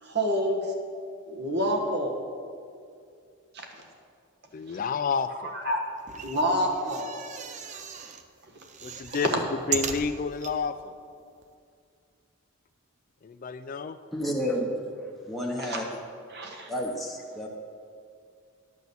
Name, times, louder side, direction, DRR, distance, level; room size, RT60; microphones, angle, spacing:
voice 1, 0.0-0.7 1.2-2.1 3.5-3.8 4.7-4.8 5.5-5.8 6.2-7.1 15.6-15.8 16.3-16.7, equal, 50° right, 2 dB, 1.3 m, -28 dB
voice 2, 4.5-5.5 8.8-9.3 9.7-10.9 13.2-14.0, left 5 dB, 40° left, 10 dB, 0.3 m, -30 dB
sound 1, 6.0-8.2 8.6-10.5 11.1-11.2 11.4-11.5, right 7 dB, 35° right, 0.5 m, -36 dB
voice 3, 14.1-15.8 16.7-17.5, equal, ahead, -2 dB, 1.0 m, -31 dB
10.5 x 6.2 x 7.0 m, 2.3 s
head